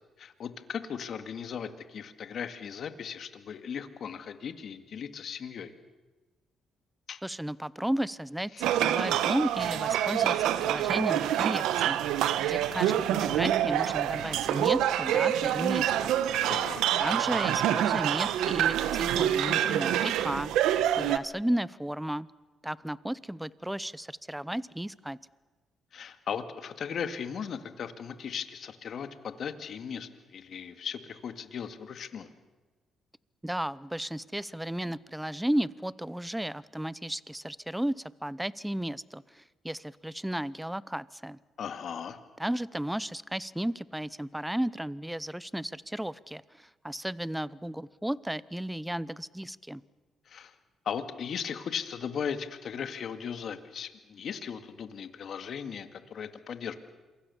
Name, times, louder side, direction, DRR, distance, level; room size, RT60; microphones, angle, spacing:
voice 1, 0.2-5.7 7.1-7.2 8.5-8.6 16.5-16.9 25.9-32.3 41.6-42.2 50.3-50.5 50.9-56.8, left 7 dB, 60° left, 9 dB, 2.1 m, -37 dB
voice 2, 7.2-16.1 17.0-20.5 21.0-22.3 22.6-25.2 33.4-41.4 42.4-49.8, right 1 dB, 5° right, 19 dB, 0.7 m, -34 dB
sound 1, 8.6-21.2, right 11 dB, 90° right, 1.1 m, -26 dB
27.5 x 23.5 x 7.1 m, 1.3 s
cardioid pair, 90°, 0 cm